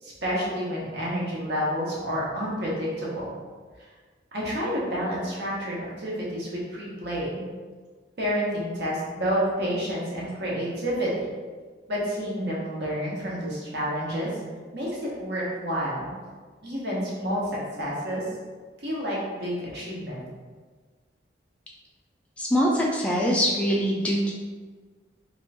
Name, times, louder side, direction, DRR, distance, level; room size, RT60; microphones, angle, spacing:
voice 1, 0.0-3.3 3.8-3.9 4.3-7.4 8.2-11.1 11.9-14.3 14.7-16.1 16.6-17.5 17.8-18.2 18.8-20.2, equal, 55° right, -5 dB, 0.9 m, -29 dB
voice 2, 22.4-24.3, equal, 5° left, -4 dB, 0.3 m, -23 dB
2.9 x 2.5 x 3.3 m, 1.4 s
head